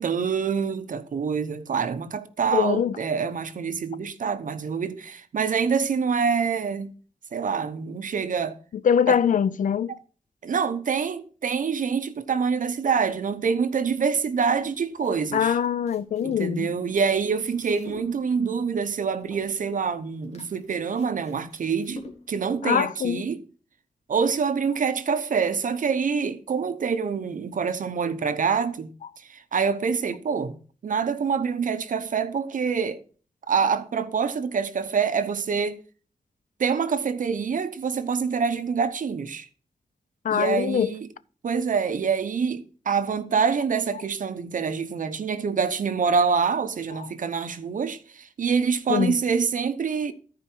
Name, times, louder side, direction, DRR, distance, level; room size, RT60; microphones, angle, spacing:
voice 1, 0.0-6.9 7.3-8.6 9.1-9.2 10.4-15.6 16.2-22.0 22.3-23.4 24.1-33.0 33.5-35.8 36.6-39.5 40.3-41.1 41.4-50.1, right 6 dB, 75° right, 0.8 m, -26 dB
voice 2, 2.5-2.9 8.8-9.9 15.3-16.7 22.6-23.2 40.2-40.9 48.9-49.2, left 8 dB, 75° left, 0.4 m, -23 dB
sound 1, 14.6-22.5, left 2 dB, 55° left, 2.0 m, -48 dB
14.0 x 4.8 x 4.5 m
wide cardioid pair, 110°, 14 cm